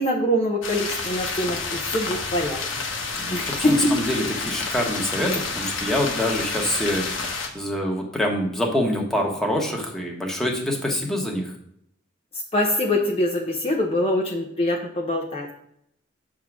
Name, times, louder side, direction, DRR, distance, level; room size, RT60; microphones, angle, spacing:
voice 1, 0.0-2.6 3.3-3.9 12.5-15.5, left 1 dB, 30° left, 0 dB, 0.8 m, -24 dB
sound 1, 0.6-7.5, left 4 dB, 85° left, 1.1 m, -29 dB
voice 2, 3.2-11.5, left 1 dB, ahead, -1 dB, 1.2 m, -26 dB
7.1 x 3.8 x 6.0 m, 0.71 s
head